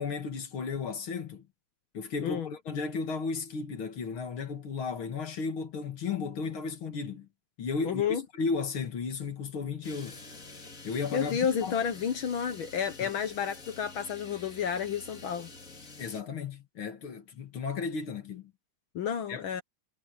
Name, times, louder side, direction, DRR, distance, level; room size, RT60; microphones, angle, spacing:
voice 1, 0.0-1.5 1.9-7.3 7.6-10.2 10.8-11.8 13.0-13.1 16.0-18.5 19.3-19.4, left 5 dB, 50° left, 2.4 m, -34 dB
voice 2, 7.8-8.2 11.1-15.5 18.9-19.6, left 7 dB, 65° left, 1.3 m, -31 dB
sound 1, 9.8-16.2, left 3 dB, 30° left, 2.9 m, -48 dB
omnidirectional pair, 3.3 m